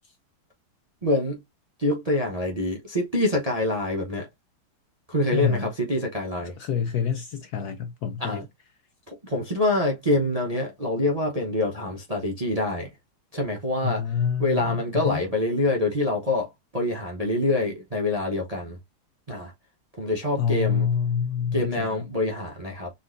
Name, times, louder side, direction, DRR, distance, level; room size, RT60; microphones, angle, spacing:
voice 1, 1.0-1.4 1.8-4.3 5.1-6.5 8.2-8.4 9.1-12.9 13.3-14.1 14.4-18.8 19.3-19.5 20.0-20.9 21.5-22.9, left 1 dB, 35° right, 0.6 m, -26 dB
voice 2, 5.3-5.7 6.6-8.4 13.8-15.2 20.4-22.0, left 7 dB, 70° left, 0.9 m, -27 dB
4.2 x 3.8 x 2.5 m
omnidirectional pair, 2.2 m